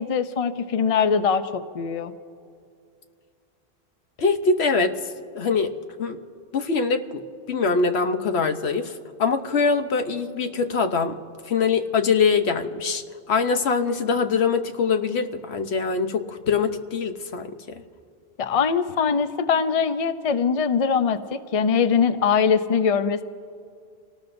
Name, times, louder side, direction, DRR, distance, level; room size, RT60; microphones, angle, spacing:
voice 1, 0.0-2.1 18.4-23.2, left 6 dB, 40° left, 10 dB, 0.6 m, -22 dB
voice 2, 4.2-5.0 5.3-5.7 6.0-6.2 6.5-8.9 9.2-11.1 11.4-17.6, left 5 dB, 80° left, 7 dB, 1.1 m, -23 dB
27.5 x 19.0 x 2.6 m, 2.3 s
omnidirectional pair, 1.1 m